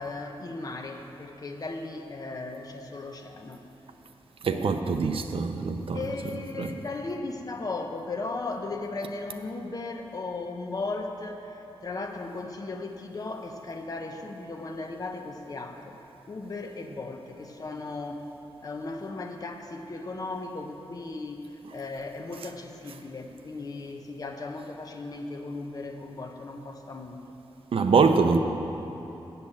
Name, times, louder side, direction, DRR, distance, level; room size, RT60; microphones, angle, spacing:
voice 1, 0.0-3.6 3.9-4.0 4.5-5.1 5.9-16.0 16.3-18.2 18.6-27.2, left 3 dB, 40° left, 0.8 m, -36 dB
voice 2, 4.4-6.0 6.6-6.8 27.7-28.4, right 5 dB, 70° right, 0.6 m, -23 dB
8.1 x 7.2 x 8.5 m
wide cardioid pair, 165°, 10 cm